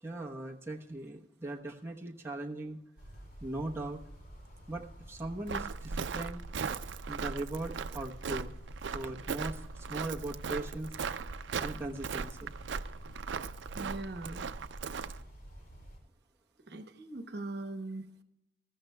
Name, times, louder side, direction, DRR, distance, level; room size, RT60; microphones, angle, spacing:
voice 1, 0.0-2.8 3.4-4.0 4.7-6.4 7.1-8.5 8.9-10.9 11.6-12.5, right 2 dB, 15° right, -2 dB, 1.0 m, -39 dB
sound 1, 3.0-16.0, equal, 55° left, 3.4 m, -50 dB
Walk footsteps, 5.5-15.2, right 5 dB, 85° right, 0.5 m, -38 dB
voice 2, 13.7-14.5 16.7-18.1, right 2 dB, 65° right, 8 dB, 1.1 m, -40 dB
20.5 x 14.5 x 2.3 m, 0.85 s
head